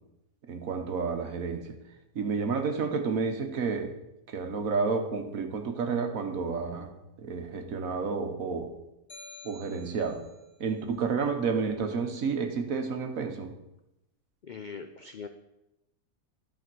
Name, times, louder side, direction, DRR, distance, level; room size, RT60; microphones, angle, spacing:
voice 1, 0.5-1.7 2.1-3.9 4.3-6.9 7.2-8.7 9.4-10.2 10.6-13.5, right 5 dB, 70° right, 5 dB, 1.5 m, -30 dB
sound 1, 9.1-10.5, left 2 dB, 40° left, 1.7 m, -49 dB
voice 2, 14.4-15.3, left 5 dB, 75° left, 8 dB, 0.4 m, -41 dB
11.5 x 5.0 x 6.1 m, 0.89 s
omnidirectional pair, 1.5 m